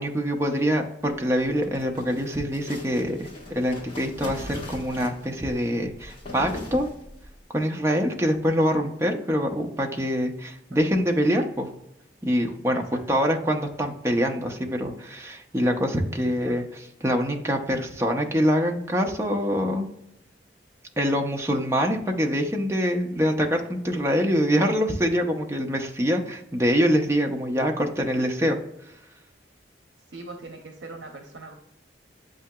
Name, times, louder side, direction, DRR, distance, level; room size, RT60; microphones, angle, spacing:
voice 1, 0.0-6.9 7.5-11.7 12.2-16.6 17.0-19.9 21.0-28.6, equal, 15° right, 2 dB, 0.5 m, -25 dB
sound 1, 1.4-7.4, left 1 dB, 30° left, 1.2 m, -40 dB
voice 2, 12.7-13.0 16.1-16.7 30.1-31.5, right 2 dB, 80° right, 4 dB, 0.7 m, -41 dB
8.2 x 2.8 x 2.2 m, 0.84 s
head